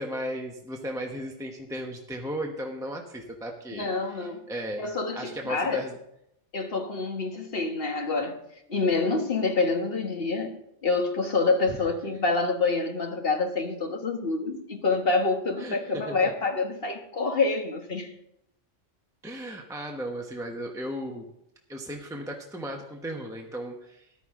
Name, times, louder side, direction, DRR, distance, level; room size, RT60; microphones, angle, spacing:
voice 1, 0.0-4.8 5.1-6.0 15.6-16.3 19.2-21.2 21.7-24.1, equal, 5° right, 1 dB, 1.0 m, -35 dB
voice 2, 3.7-4.4 4.8-5.8 6.5-8.4 8.7-18.1, left 3 dB, 50° left, 4 dB, 1.7 m, -27 dB
14.0 x 11.0 x 3.7 m, 0.77 s
omnidirectional pair, 1.2 m